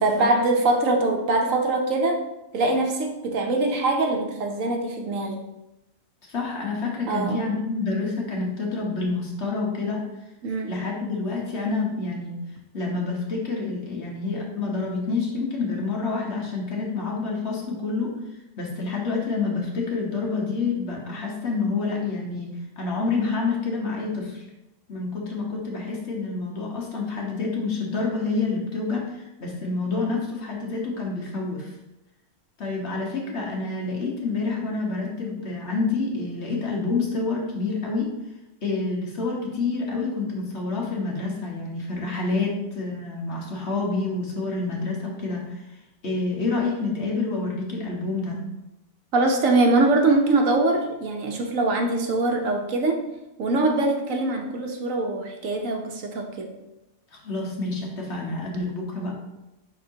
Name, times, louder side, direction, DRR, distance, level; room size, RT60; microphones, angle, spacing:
voice 1, 0.0-2.2 2.5-5.4 7.1-7.4 10.4-10.7 49.1-53.0 53.4-56.5, right 2 dB, 75° right, 3 dB, 1.3 m, -23 dB
voice 2, 6.3-10.1 10.7-12.4 12.7-18.2 18.6-24.4 24.9-31.7 32.6-38.1 38.6-45.6 46.0-48.4 57.1-59.1, left 3 dB, 55° left, -2 dB, 1.6 m, -28 dB
11.0 x 3.7 x 2.8 m, 0.95 s
omnidirectional pair, 1.4 m